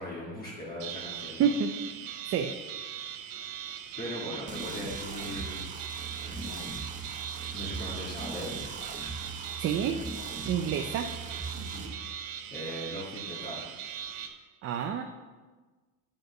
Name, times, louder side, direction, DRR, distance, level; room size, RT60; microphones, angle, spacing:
voice 1, 0.0-1.5 4.0-5.6 6.2-6.7 7.5-8.6 11.6-12.2 12.5-13.7, equal, 20° left, -5 dB, 1.8 m, -39 dB
sound 1, 0.8-14.3, right 9 dB, 75° right, 1.1 m, -40 dB
voice 2, 1.4-1.7 2.3-2.5 9.6-10.0 10.5-11.1 14.6-15.0, right 8 dB, 35° right, 5 dB, 0.5 m, -28 dB
sound 2, 4.5-11.9, right 4 dB, 20° right, 1.1 m, -40 dB
10.0 x 5.4 x 6.8 m, 1.3 s
cardioid pair, 160°, 40 cm